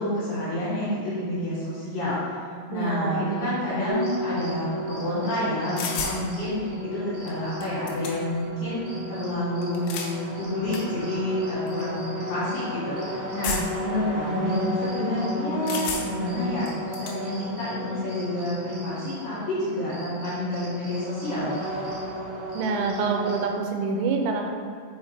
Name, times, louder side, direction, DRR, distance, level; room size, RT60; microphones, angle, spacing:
voice 1, 0.0-2.4 2.7-21.6, left 1 dB, 60° left, -10 dB, 2.6 m, -29 dB
voice 2, 2.7-3.3 13.9-14.0 22.5-24.5, right 4 dB, 85° right, 3 dB, 3.3 m, -26 dB
sound 1, 3.9-23.5, left 1 dB, 65° right, 2.2 m, -34 dB
sound 2, 5.8-6.2 7.3-7.4 7.6-8.4 9.6-10.1 10.7-10.8 11.7-11.8 13.4-13.9 15.7-16.3 16.7-17.2, left 5 dB, 85° left, 2.9 m, -32 dB
6.4 x 5.6 x 3.2 m, 2.3 s
omnidirectional pair, 5.8 m